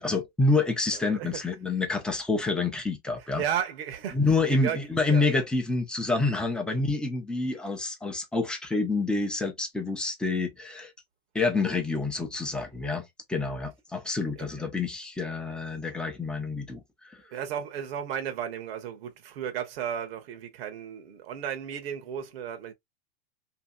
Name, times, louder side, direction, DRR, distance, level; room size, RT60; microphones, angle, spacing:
voice 1, 0.0-3.4 4.1-10.9 11.3-17.2, left 3 dB, 5° left, 0.6 m, -28 dB
voice 2, 0.9-1.3 3.2-4.2 4.5-4.8 5.1-5.3 14.4-14.5 17.3-22.7, right 9 dB, 65° right, 0.9 m, -34 dB
2.8 x 2.6 x 2.2 m
hypercardioid pair, 120°, 32 cm